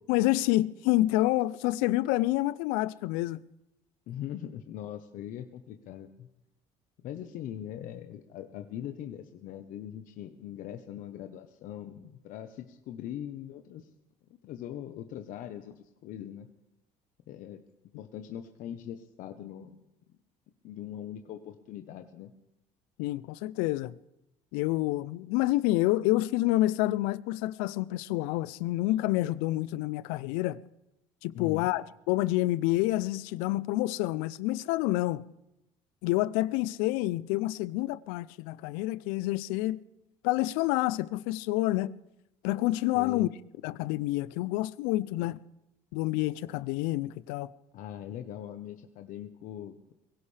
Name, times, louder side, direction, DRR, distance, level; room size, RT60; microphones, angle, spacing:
voice 1, 0.1-3.4 23.0-24.0 24.5-30.6 31.2-35.2 36.0-39.8 40.2-41.9 42.4-43.3 43.6-45.4 45.9-47.5, left 17 dB, 85° left, 0.5 m, -28 dB
voice 2, 4.1-6.3 7.0-13.9 14.4-16.5 17.3-17.6 18.0-19.8 20.6-22.3 31.3-31.7 42.9-43.3 47.7-49.9, left 11 dB, 65° left, 1.0 m, -41 dB
22.0 x 16.0 x 3.4 m
supercardioid pair, 90°, 14 cm